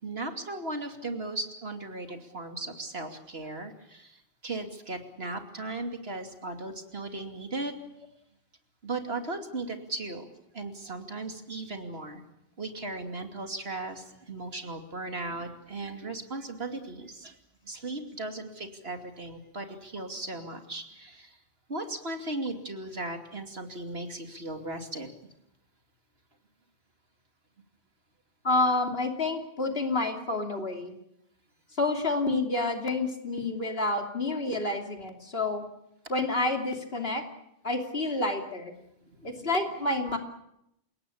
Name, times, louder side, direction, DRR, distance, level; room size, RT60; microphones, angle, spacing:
voice 1, 0.0-4.2 4.4-7.7 8.8-12.2 12.6-17.3 17.6-21.4 21.7-25.1 39.1-39.4 40.1-40.2, right 2 dB, 65° right, 5 dB, 3.0 m, -37 dB
voice 2, 28.4-30.9 31.8-35.6 36.1-37.2 37.6-38.7 39.2-40.2, left 2 dB, 60° left, 4 dB, 3.2 m, -29 dB
29.0 x 17.5 x 8.6 m, 0.81 s
omnidirectional pair, 1.1 m